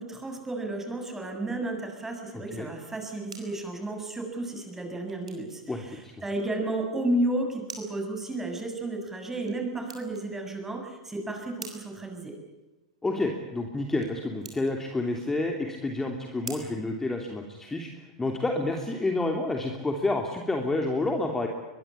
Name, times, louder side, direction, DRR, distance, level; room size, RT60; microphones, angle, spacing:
voice 1, 0.0-12.3, right 1 dB, 10° right, 4 dB, 7.3 m, -32 dB
sound 1, 3.1-17.8, right 4 dB, 85° right, 6.5 m, -50 dB
voice 2, 5.7-6.1 13.0-21.5, left 2 dB, 10° left, 3 dB, 3.1 m, -29 dB
23.5 x 22.5 x 8.5 m, 1.1 s
hypercardioid pair, 95°, 3 cm